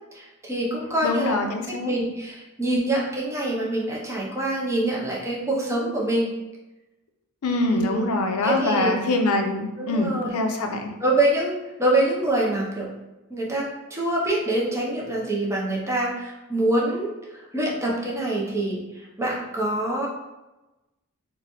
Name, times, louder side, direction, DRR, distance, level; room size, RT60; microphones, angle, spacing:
voice 1, 0.1-1.4 1.7-6.3 7.6-8.1 8.4-8.9 9.8-10.4 11.0-11.5 11.8-12.9 13.3-18.8 19.2-20.1, right 1 dB, 15° right, -4 dB, 0.6 m, -25 dB
voice 2, 1.0-1.9 7.4-10.9, left 2 dB, 70° left, 4 dB, 0.5 m, -24 dB
3.0 x 2.2 x 4.0 m, 1.0 s
head